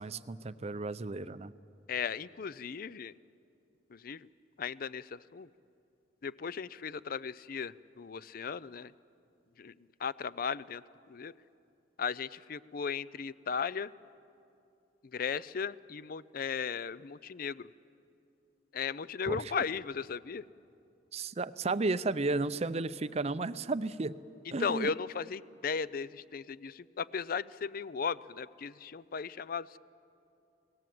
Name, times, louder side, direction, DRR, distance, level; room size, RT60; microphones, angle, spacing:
voice 1, 0.0-1.5 19.3-19.6 21.1-24.2 24.5-24.9, right 3 dB, 35° right, 14 dB, 0.5 m, -33 dB
voice 2, 1.9-3.1 3.9-4.3 4.6-5.5 6.2-8.9 9.6-9.7 10.0-10.8 11.1-11.3 12.0-13.9 15.1-17.7 18.7-20.4 24.6-29.8, left 6 dB, 50° left, 18 dB, 0.5 m, -36 dB
30.0 x 19.0 x 7.8 m, 2.6 s
head